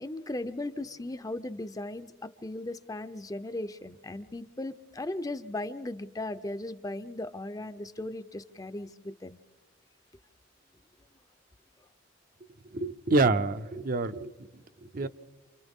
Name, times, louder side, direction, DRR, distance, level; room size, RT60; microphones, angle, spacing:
voice 1, 0.0-9.4, left 2 dB, 20° left, 12 dB, 0.6 m, -37 dB
voice 2, 12.8-14.3 14.9-15.1, right 3 dB, 50° right, 10 dB, 0.7 m, -26 dB
28.5 x 28.5 x 3.6 m, 1.2 s
head